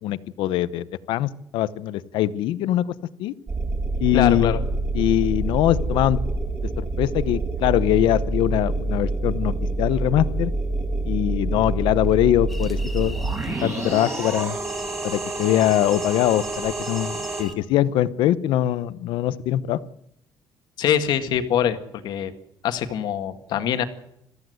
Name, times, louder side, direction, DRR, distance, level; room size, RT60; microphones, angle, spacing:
voice 1, 0.0-2.8 3.2-3.3 4.0-4.6 4.9-6.2 6.8-10.5 11.1-13.2 13.6-14.6 15.0-19.8, left 13 dB, 80° left, 15 dB, 1.0 m, -22 dB
sound 1, 3.5-17.4, right 2 dB, 30° right, 7.1 m, -27 dB
voice 2, 4.1-4.6 20.8-22.3 22.6-23.9, left 9 dB, 60° left, 8 dB, 1.9 m, -23 dB
sound 2, 12.5-17.5, left 1 dB, ahead, 1.7 m, -40 dB
23.0 x 14.5 x 7.9 m, 0.79 s
cardioid pair, 170°, 8 cm